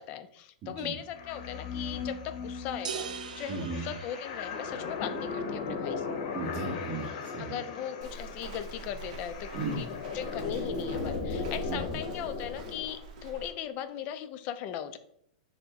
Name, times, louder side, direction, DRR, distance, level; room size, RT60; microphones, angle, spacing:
voice 1, 0.0-6.2 7.4-9.5 9.8-15.0, left 10 dB, 40° left, 10 dB, 0.4 m, -38 dB
voice 2, 0.6-0.9 3.5-3.9 6.3-7.6 9.5-9.8 11.7-12.0, right 3 dB, 35° right, -2 dB, 1.3 m, -36 dB
sound 1, 1.1-12.9, left 4 dB, 60° left, 0.8 m, -37 dB
sound 2, 2.8-4.9, right 7 dB, 90° right, 0.3 m, -40 dB
Walk footsteps, 8.0-13.5, right 2 dB, 55° right, 0.8 m, -43 dB
4.4 x 2.1 x 3.7 m, 0.71 s
hypercardioid pair, 130°, 4 cm